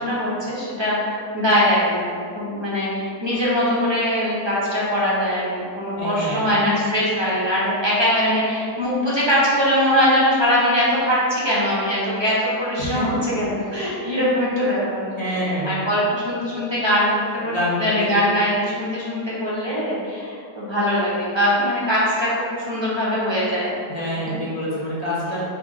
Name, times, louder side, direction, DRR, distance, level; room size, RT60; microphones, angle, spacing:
voice 1, 0.0-5.5 5.7-23.8, equal, 35° right, -8 dB, 0.4 m, -22 dB
voice 2, 6.0-6.5 12.8-13.0 13.6-13.8 15.2-15.7 17.4-18.2 23.9-25.4, left 1 dB, 50° left, -8 dB, 0.4 m, -27 dB
4.1 x 2.7 x 4.7 m, 2.3 s
omnidirectional pair, 1.8 m